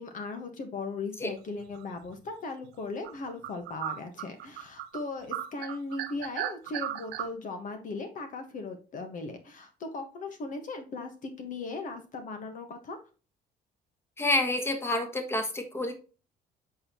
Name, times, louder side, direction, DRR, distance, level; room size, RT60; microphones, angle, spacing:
voice 1, 0.0-13.0, left 3 dB, 50° left, 6 dB, 1.3 m, -38 dB
sound 1, 1.7-2.1 2.6-2.7 3.0-5.0 5.3-7.3, right 12 dB, 85° right, 0.7 m, -36 dB
voice 2, 14.2-15.9, left 2 dB, 15° left, 5 dB, 1.4 m, -28 dB
7.4 x 4.6 x 2.9 m, 0.34 s
cardioid pair, 110°, 17 cm